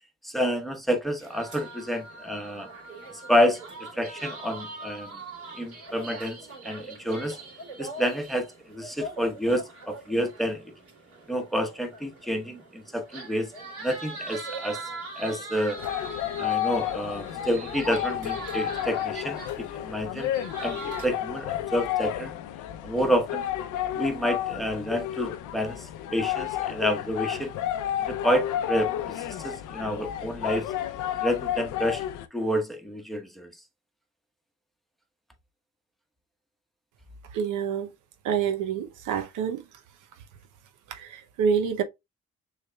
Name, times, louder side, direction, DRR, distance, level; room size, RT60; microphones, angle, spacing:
voice 1, 0.2-2.7 3.3-3.6 3.9-5.2 5.6-6.4 6.6-7.4 7.8-10.6 11.3-13.5 13.8-14.8 15.2-15.8 16.4-20.3 20.6-22.3 22.8-23.4 24.0-27.5 28.0-30.7 31.2-32.0 32.3-33.5, equal, ahead, 1.0 m, -29 dB
sound 1, 1.2-21.1, right 2 dB, 50° right, 2.7 m, -41 dB
sound 2, 15.8-32.3, left 12 dB, 90° left, 0.6 m, -31 dB
voice 2, 37.3-37.9 38.2-39.6 40.9-41.8, right 7 dB, 85° right, 0.7 m, -27 dB
6.3 x 3.3 x 2.2 m
cardioid pair, 90°, 30 cm